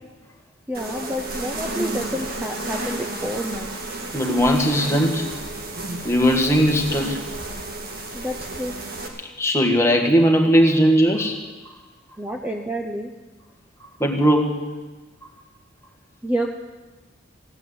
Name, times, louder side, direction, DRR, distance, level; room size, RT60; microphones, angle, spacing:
voice 1, 0.7-3.7 8.1-8.8 12.2-13.1 16.2-16.5, equal, 10° right, 2 dB, 0.7 m, -29 dB
sound 1, 0.7-9.1, right 2 dB, 45° right, 2.0 m, -32 dB
voice 2, 4.1-5.3 6.0-7.2 9.4-11.4 14.0-14.6, equal, 15° left, 2 dB, 1.5 m, -18 dB
15.5 x 9.1 x 9.5 m, 1.2 s
head